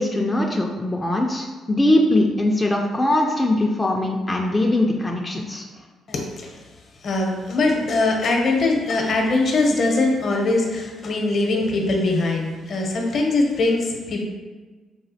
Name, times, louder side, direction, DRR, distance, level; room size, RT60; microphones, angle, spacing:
voice 1, 0.0-5.7, left 1 dB, 15° left, 0 dB, 0.3 m, -21 dB
voice 2, 6.1-6.6 7.0-14.2, left 2 dB, 60° left, 1 dB, 0.6 m, -21 dB
4.0 x 2.3 x 2.7 m, 1.3 s
cardioid pair, 90°, 0 cm